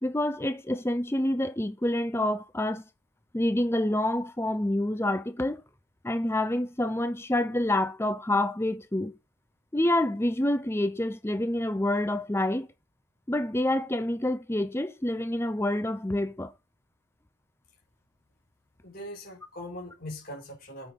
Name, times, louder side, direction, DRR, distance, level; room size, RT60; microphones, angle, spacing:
voice 1, 0.0-2.8 3.3-5.6 6.0-9.1 9.7-12.7 13.3-16.5, left 1 dB, 15° left, 0.7 m, -27 dB
voice 2, 18.8-20.9, left 1 dB, 50° left, 4.7 m, -41 dB
8.9 x 7.0 x 3.8 m
head